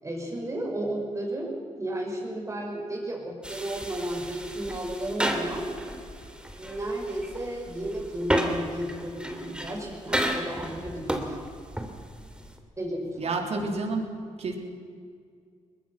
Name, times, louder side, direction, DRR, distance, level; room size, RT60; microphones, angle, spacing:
voice 1, 0.0-5.7 6.6-11.4 12.8-13.4, right 1 dB, 25° right, -1 dB, 6.8 m, -33 dB
sound 1, 3.4-12.6, right 1 dB, 10° right, 2.9 m, -33 dB
voice 2, 13.2-14.1 14.4-14.6, right 3 dB, 60° right, 3 dB, 3.8 m, -29 dB
22.0 x 21.0 x 6.1 m, 2.2 s
cardioid pair, 80°, 13 cm